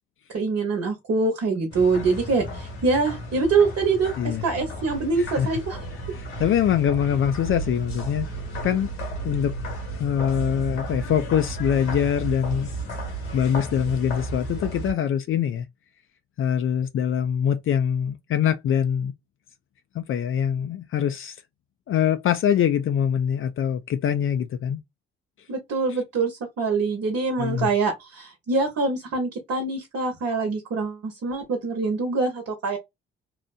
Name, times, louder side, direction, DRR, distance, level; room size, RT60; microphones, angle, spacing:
voice 1, 0.3-5.8 25.5-32.8, right 4 dB, 55° right, 1.1 m, -24 dB
sound 1, 1.7-14.9, right 2 dB, 80° left, 1.3 m, -33 dB
voice 2, 6.1-8.3 8.6-8.9 9.2-9.5 9.9-12.7 13.3-15.7 16.4-19.1 19.9-21.3 21.9-24.8 27.4-27.7, left 9 dB, 45° left, 0.5 m, -24 dB
2.8 x 2.1 x 2.5 m
hypercardioid pair, 50°, 29 cm